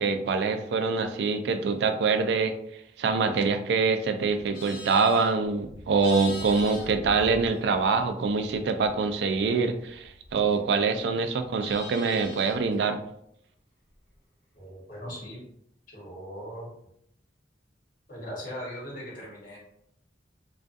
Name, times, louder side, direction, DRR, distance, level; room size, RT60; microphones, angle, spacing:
voice 1, 0.0-2.5 3.0-13.0, right 4 dB, 65° right, 8 dB, 0.3 m, -25 dB
Livestock farm animals working animals, 4.3-8.0 8.3-10.8 11.2-12.7, left 2 dB, 85° left, 1.0 m, -43 dB
voice 2, 14.5-15.4 15.9-16.7 18.1-19.6, equal, 50° left, -5 dB, 1.0 m, -39 dB
2.5 x 2.3 x 2.4 m, 0.73 s
head